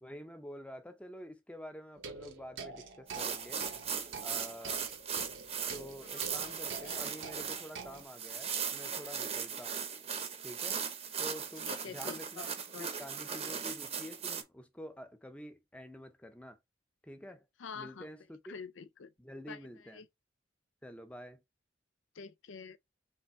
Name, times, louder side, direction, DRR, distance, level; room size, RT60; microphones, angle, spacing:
voice 1, 0.0-3.7 4.2-4.8 5.7-9.8 10.4-10.8 11.2-12.5 12.8-16.6 17.0-17.5 17.7-18.5 19.2-20.0 20.8-21.4, equal, 5° left, 0.6 m, -48 dB
sound 1, 1.9-8.0, right 4 dB, 85° right, 0.9 m, -47 dB
sound 2, 3.1-14.4, right 7 dB, 30° right, 0.7 m, -38 dB
voice 2, 6.1-6.5 6.8-7.2 11.6-12.9 17.6-18.1 18.5-19.1 19.5-19.6 19.9-20.1 22.1-22.8, left 6 dB, 85° left, 0.5 m, -47 dB
3.4 x 3.3 x 4.2 m
head